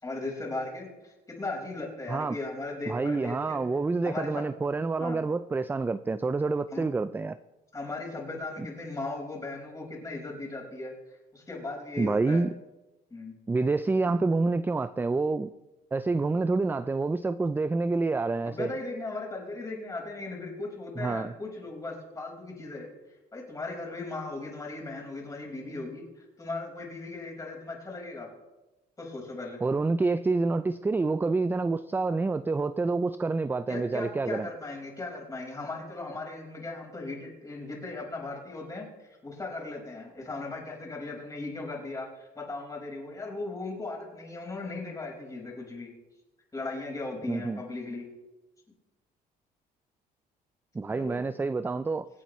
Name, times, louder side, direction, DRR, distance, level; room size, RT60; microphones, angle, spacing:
voice 1, 0.0-3.6 4.0-4.5 5.0-5.3 6.7-6.8 7.7-10.9 11.3-12.4 13.1-13.3 18.5-22.9 23.3-28.3 29.0-29.6 33.7-45.9 46.5-48.0 50.8-51.2, left 2 dB, 20° left, 4.8 m, -37 dB
voice 2, 2.9-7.4 12.0-12.5 13.5-15.5 15.9-18.7 21.0-21.3 29.6-34.5 47.3-47.6 50.7-52.1, right 3 dB, 10° right, 0.3 m, -27 dB
25.5 x 8.6 x 3.1 m
cardioid pair, 110°, 17 cm